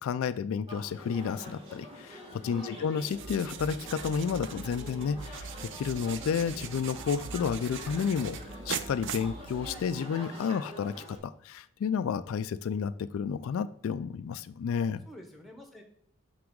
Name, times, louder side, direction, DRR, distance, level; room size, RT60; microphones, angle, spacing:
voice 1, 0.0-5.5 5.8-8.4 8.7-15.0, left 6 dB, 70° left, 13 dB, 0.3 m, -31 dB
sound 1, 0.7-11.2, equal, 25° right, 2.1 m, -46 dB
voice 2, 2.5-2.9 10.4-10.7 15.1-15.8, equal, ahead, 3 dB, 1.0 m, -47 dB
sound 2, 3.0-10.0, right 6 dB, 55° right, 0.5 m, -41 dB
6.1 x 5.9 x 3.7 m, 0.70 s
head